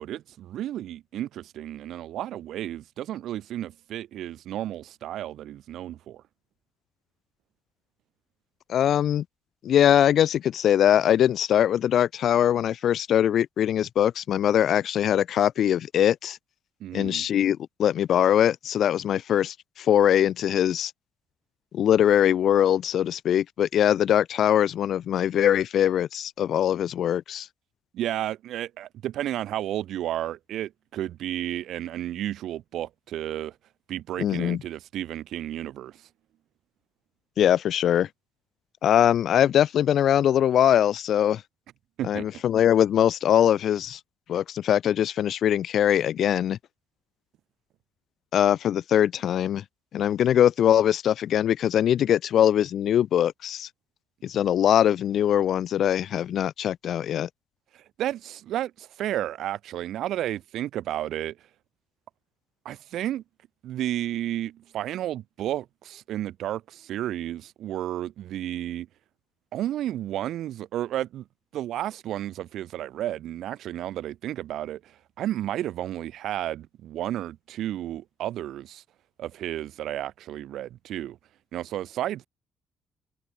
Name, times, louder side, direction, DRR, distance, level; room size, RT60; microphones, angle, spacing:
voice 1, 0.0-6.2 16.8-17.2 27.9-33.5 33.9-35.9 42.0-42.3 58.0-61.3 62.6-63.2 63.6-68.9 69.5-71.2 71.5-74.8 75.2-78.8 79.2-81.2 81.5-82.2, right 12 dB, 80° right, 0.9 m, -32 dB
voice 2, 8.7-9.2 9.6-16.4 16.9-20.9 21.7-27.5 34.2-34.6 37.4-38.1 38.8-41.4 42.0-44.0 44.3-46.6 48.3-49.6 49.9-53.7 54.2-57.3, left 10 dB, 70° left, 0.9 m, -22 dB
cardioid pair, 90°, 0 cm